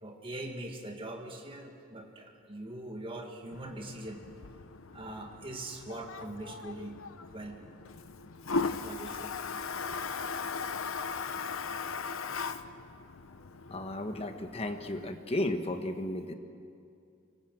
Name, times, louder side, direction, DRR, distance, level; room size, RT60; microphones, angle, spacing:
voice 1, 0.0-4.3 4.9-7.0 7.3-7.7 8.8-9.4 9.8-10.0, right 1 dB, 25° right, 2 dB, 2.0 m, -42 dB
Toilet flush, 3.5-15.1, left 4 dB, 75° left, 0.8 m, -38 dB
voice 2, 13.7-16.3, left 1 dB, 30° left, 6 dB, 1.3 m, -34 dB
24.5 x 19.5 x 7.6 m, 2.5 s
head